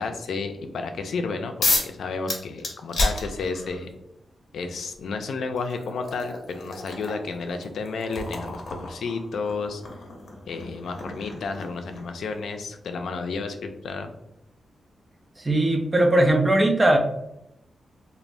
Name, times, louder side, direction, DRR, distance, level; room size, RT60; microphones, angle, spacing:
voice 1, 0.0-3.9 4.5-9.8 10.5-13.6 13.8-14.1, left 4 dB, 85° left, 6 dB, 0.4 m, -31 dB
sound 1, 1.6-2.0 2.3-3.8 4.9-5.0 5.6-12.2, left 2 dB, 60° left, 0.7 m, -31 dB
voice 2, 15.4-17.0, right 1 dB, 20° right, 3 dB, 0.4 m, -19 dB
3.1 x 2.1 x 2.5 m, 0.83 s
wide cardioid pair, 160°, 0 cm